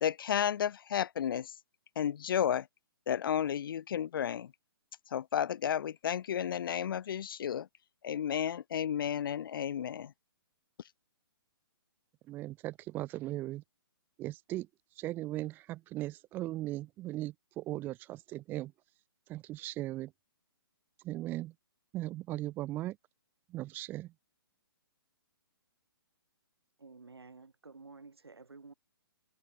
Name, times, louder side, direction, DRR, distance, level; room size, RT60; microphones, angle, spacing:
voice 1, 0.0-1.6 2.0-2.7 3.1-4.5 5.1-7.7 8.0-10.1, left 9 dB, 60° left, 0.5 m, -32 dB
voice 2, 12.3-13.6 14.2-14.7 15.0-18.7 19.3-20.1 21.0-21.5 21.9-23.0 23.5-24.1, right 16 dB, 15° right, 0.3 m, -38 dB
voice 3, 26.8-28.7, right 4 dB, 90° right, 3.9 m, -52 dB
hypercardioid pair, 135°, 13 cm